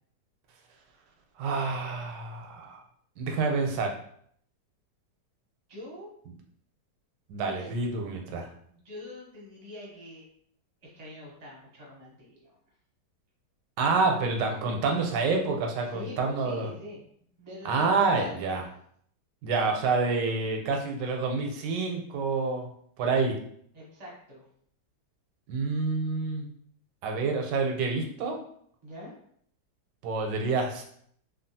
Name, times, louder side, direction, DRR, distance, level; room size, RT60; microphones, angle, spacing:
voice 1, 1.4-2.8 3.2-3.9 7.3-8.5 13.8-16.7 17.6-18.6 19.4-22.7 23.0-23.4 25.5-26.5 27.0-28.4 30.0-30.8, right 4 dB, 80° right, 2 dB, 1.2 m, -28 dB
voice 2, 5.7-6.1 7.4-7.7 8.7-10.2 10.8-12.5 15.9-17.0 17.4-18.4 23.7-24.5 28.8-29.1, left 1 dB, 35° right, -4 dB, 0.6 m, -44 dB
3.3 x 2.3 x 2.6 m, 0.64 s
omnidirectional pair, 1.9 m